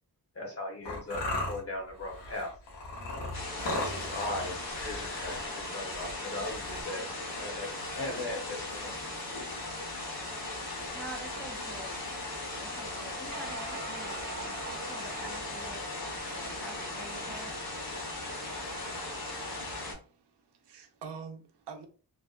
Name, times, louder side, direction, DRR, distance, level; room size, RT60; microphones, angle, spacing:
voice 1, 0.3-2.5 3.6-7.1 7.4-9.1, left 1 dB, 35° left, 0.8 m, -38 dB
sound 1, 0.9-6.8, left 2 dB, 85° left, 0.9 m, -37 dB
sound 2, 3.3-19.9, left 2 dB, 60° left, 1.1 m, -38 dB
sound 3, 7.7-20.0, right 2 dB, 50° right, 0.8 m, -49 dB
voice 2, 10.9-12.0 12.6-15.9 16.4-17.6, right 1 dB, ahead, 0.4 m, -47 dB
voice 3, 20.0-21.9, right 5 dB, 75° right, 0.6 m, -45 dB
2.6 x 2.1 x 2.3 m
wide cardioid pair, 125°, 41 cm